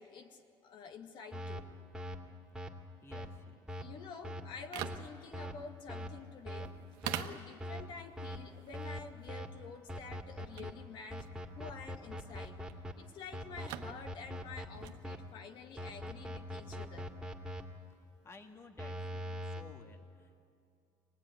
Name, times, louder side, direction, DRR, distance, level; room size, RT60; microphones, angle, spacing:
voice 1, 0.0-1.7 3.7-6.8 7.1-11.3 11.6-12.6 13.0-17.1, left 5 dB, 65° left, 5 dB, 2.1 m, -49 dB
sound 1, 1.3-1.6 1.9-2.2 2.5-2.7 3.1-3.3 3.7-3.8 4.2-4.4 4.8-5.0 5.3-5.5 5.9-6.1 6.5-6.7 7.0-7.2 7.6-7.8 8.2-8.4 8.7-9.0 9.3-9.5 9.9-10.7 11.1-12.9 13.3-15.2 15.8-17.6 18.8-19.6, equal, 5° right, 2.5 m, -41 dB
voice 2, 3.0-3.8 18.2-20.4, left 3 dB, 30° left, 5 dB, 2.0 m, -55 dB
sound 2, 4.5-18.7, right 12 dB, 85° right, 1.2 m, -49 dB
25.0 x 19.0 x 9.5 m, 2.4 s
cardioid pair, 105°, 9 cm